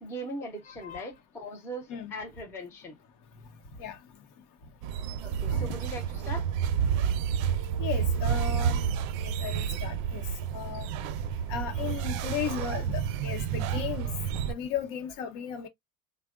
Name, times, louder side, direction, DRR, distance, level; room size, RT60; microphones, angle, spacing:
voice 1, 0.0-3.0 5.2-6.4, equal, 5° left, 0.3 m, -40 dB
voice 2, 0.7-1.1 1.9-2.1 3.8-4.0 5.5-5.8 7.8-8.8 9.2-10.3 10.5-10.9 11.5-14.1 14.5-15.7, left 8 dB, 65° left, 0.8 m, -35 dB
sound 1, 4.8-14.5, right 8 dB, 70° right, 0.5 m, -30 dB
3.5 x 2.1 x 2.2 m
cardioid pair, 160°, 45 cm